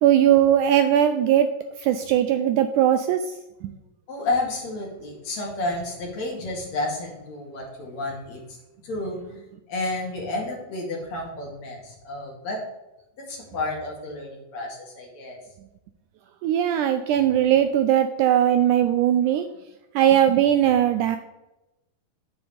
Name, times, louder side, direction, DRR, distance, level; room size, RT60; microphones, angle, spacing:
voice 1, 0.0-1.5 1.8-3.2 3.6-3.7 16.4-19.5 20.0-21.2, right 10 dB, 80° right, 8 dB, 1.8 m, -19 dB
voice 2, 4.1-8.4 8.8-9.2 9.7-12.6 13.2-15.4, left 2 dB, 55° left, -1 dB, 3.6 m, -31 dB
10.0 x 8.6 x 3.4 m, 0.96 s
omnidirectional pair, 4.0 m